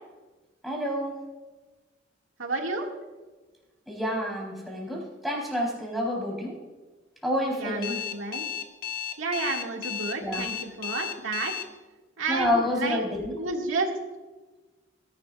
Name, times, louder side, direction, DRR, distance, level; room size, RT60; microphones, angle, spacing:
voice 1, 0.6-1.2 3.9-6.6 7.2-8.0 10.2-10.5 12.3-13.3, left 1 dB, ahead, -4 dB, 3.9 m, -28 dB
voice 2, 2.4-2.9 7.5-8.4 9.2-11.5 12.2-13.0 13.4-13.9, right 3 dB, 80° right, 1 dB, 2.0 m, -31 dB
Alarm, 7.8-11.6, left 9 dB, 50° left, 1.3 m, -33 dB
18.5 x 11.5 x 2.4 m, 1.2 s
head